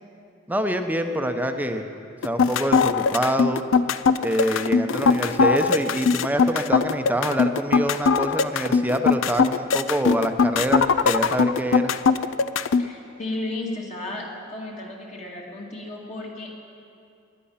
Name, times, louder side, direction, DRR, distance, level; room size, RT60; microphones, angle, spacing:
voice 1, 0.5-1.9 2.2-3.6 4.2-11.9, equal, 10° right, 6 dB, 0.8 m, -25 dB
sound 1, 2.2-12.8, left 5 dB, 75° left, 0.5 m, -20 dB
voice 2, 12.8-16.6, left 2 dB, 35° left, -2 dB, 2.3 m, -34 dB
20.0 x 10.5 x 5.7 m, 2.5 s
head